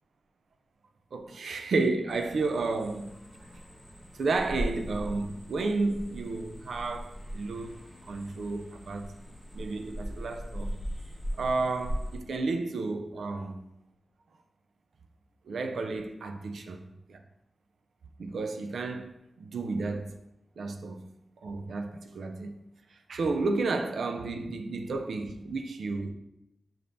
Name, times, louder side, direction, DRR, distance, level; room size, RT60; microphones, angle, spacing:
voice 1, 1.1-3.1 4.2-7.8 8.1-9.1 9.5-10.7 11.4-13.6 15.5-16.8 17.1-17.2 18.2-20.2 20.6-21.0 21.4-22.6 23.1-26.1, right 3 dB, 85° right, 0.4 m, -32 dB
sound 1, 2.1-12.2, equal, 20° right, 1.1 m, -39 dB
5.6 x 3.4 x 2.6 m
wide cardioid pair, 130°, 0 cm